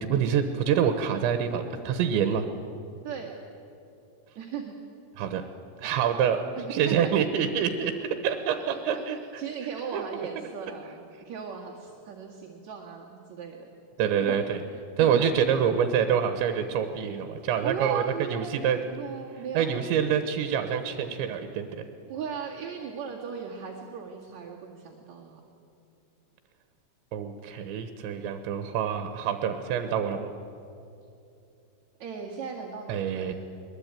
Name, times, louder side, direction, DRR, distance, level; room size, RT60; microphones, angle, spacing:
voice 1, 0.0-2.5 5.2-5.4 5.8-6.4 6.7-9.4 9.9-10.2 14.0-14.6 15.0-18.8 19.5-21.8 27.1-30.3 32.9-33.3, right 8 dB, 85° right, 8 dB, 3.3 m, -26 dB
voice 2, 4.4-4.7 6.6-7.1 7.8-7.9 8.9-9.0 9.4-13.7 14.0-14.4 15.0-15.3 17.6-19.8 22.1-25.4 32.0-33.3, right 6 dB, 50° right, -4 dB, 2.7 m, -37 dB
22.0 x 22.0 x 9.0 m, 2.6 s
omnidirectional pair, 5.2 m